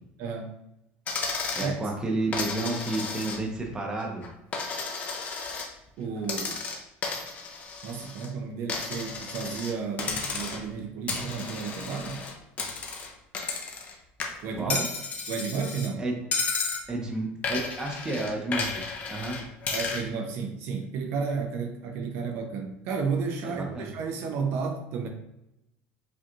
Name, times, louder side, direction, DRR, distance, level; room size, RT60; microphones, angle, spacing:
voice 1, 0.2-0.6 1.6-1.7 6.0-6.6 7.8-12.2 14.4-14.8 15.3-16.0 19.3-19.4 19.7-25.1, right 5 dB, 55° right, 3 dB, 0.6 m, -32 dB
Coin (dropping), 1.1-1.7 2.3-3.6 4.0-5.7 6.2-8.3 8.7-9.7 10.0-10.7 11.1-13.9 14.2-15.9 16.3-16.8 17.4-20.0, left 4 dB, 30° left, 0.6 m, -33 dB
voice 2, 1.6-4.2 14.6-14.9 16.0-16.2 16.9-18.8 19.1-19.4 23.4-23.9, right 2 dB, 15° right, 1 dB, 0.7 m, -31 dB
4.9 x 2.3 x 3.0 m, 0.85 s
cardioid pair, 155°, 5 cm